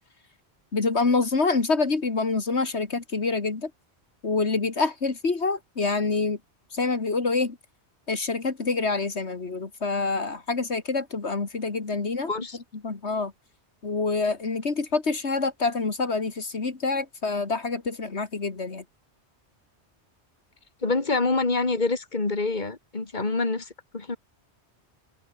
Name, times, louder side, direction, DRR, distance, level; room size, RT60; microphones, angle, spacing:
voice 1, 0.7-3.7 4.2-6.4 6.7-7.6 8.1-12.3 12.8-13.3 13.8-18.8, left 3 dB, 75° left, 2.6 m, -26 dB
voice 2, 20.8-24.2, left 3 dB, 45° left, 2.6 m, -26 dB
omnidirectional pair, 1.1 m